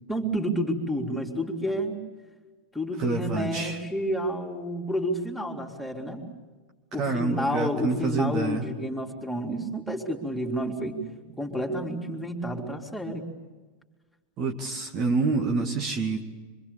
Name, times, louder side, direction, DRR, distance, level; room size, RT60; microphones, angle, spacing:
voice 1, 0.1-2.0 2.7-6.2 6.9-11.0 11.4-13.3, equal, 5° left, -1 dB, 3.7 m, -30 dB
voice 2, 3.0-3.8 6.0-6.1 6.9-8.6 14.4-16.3, right 4 dB, 35° right, 3 dB, 2.4 m, -27 dB
26.0 x 26.0 x 7.1 m, 1.3 s
figure-of-eight pair, 90°, 0 cm